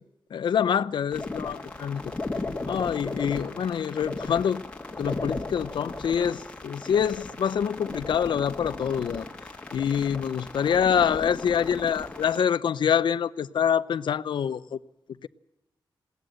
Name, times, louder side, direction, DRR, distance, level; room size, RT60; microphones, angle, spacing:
voice 1, 0.3-2.0 2.7-4.6 5.0-9.2 9.7-14.8, left 8 dB, 70° left, 0.7 m, -26 dB
sound 1, 1.1-12.4, left 2 dB, 15° left, 1.9 m, -36 dB
20.5 x 17.5 x 7.7 m
wide cardioid pair, 175°, 8 cm